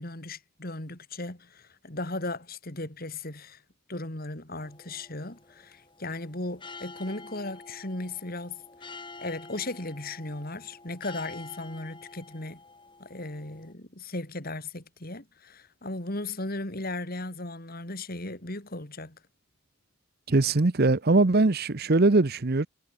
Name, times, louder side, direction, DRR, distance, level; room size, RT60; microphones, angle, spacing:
voice 1, 0.0-3.6 3.9-8.6 9.2-12.6 13.0-19.2, left 2 dB, 40° left, 2.9 m, -36 dB
sound 1, 4.6-13.7, left 3 dB, 20° left, 6.0 m, -48 dB
voice 2, 20.3-22.7, right 2 dB, 45° right, 0.8 m, -21 dB
head